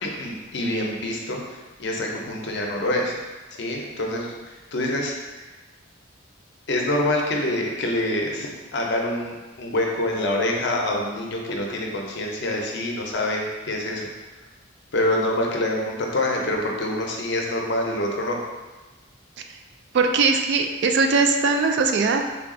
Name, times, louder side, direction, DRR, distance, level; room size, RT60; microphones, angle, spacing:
voice 1, 0.0-1.4 1.8-3.1 3.6-5.4 6.7-14.1 14.9-18.4, left 1 dB, 60° left, 0 dB, 0.6 m, -26 dB
voice 2, 19.9-22.3, right 4 dB, 60° right, 5 dB, 0.3 m, -20 dB
3.4 x 2.3 x 3.7 m, 1.2 s
head